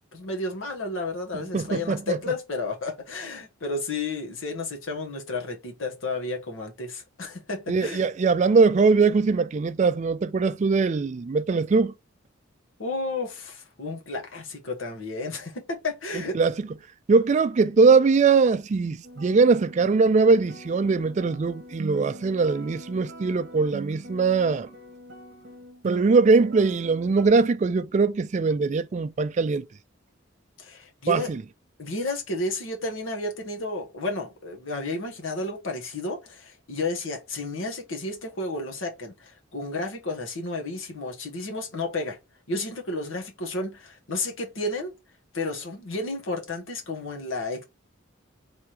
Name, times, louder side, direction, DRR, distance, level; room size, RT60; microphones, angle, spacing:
voice 1, 0.1-8.0 12.8-16.4 30.6-31.3 31.8-42.2 42.5-44.9 45.3-47.6, left 2 dB, 85° left, 1.2 m, -32 dB
voice 2, 1.5-2.2 7.7-11.9 16.3-16.5 17.1-24.7 25.8-29.7 31.1-31.4, right 4 dB, 35° right, 0.3 m, -21 dB
sound 1, 19.0-27.3, right 2 dB, 55° right, 1.0 m, -42 dB
3.5 x 3.0 x 4.8 m
head